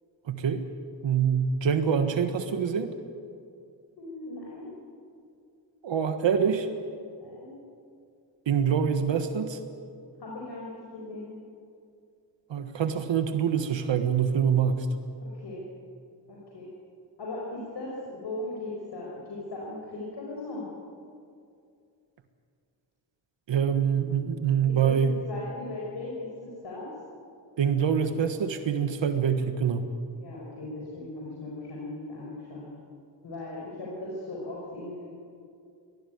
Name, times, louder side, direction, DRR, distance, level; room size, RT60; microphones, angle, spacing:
voice 1, 0.2-0.6 1.0-2.9 5.8-6.7 8.5-9.6 12.5-14.9 23.5-25.1 27.6-29.8, right 7 dB, 75° right, 7 dB, 1.5 m, -25 dB
voice 2, 4.0-4.7 7.2-7.5 10.2-11.4 15.2-15.7 16.3-16.7 17.2-20.7 24.6-26.9 30.2-32.6 33.2-35.1, left 2 dB, 65° left, -4 dB, 5.5 m, -38 dB
23.5 x 19.0 x 9.4 m, 2.4 s
wide cardioid pair, 140°, 45 cm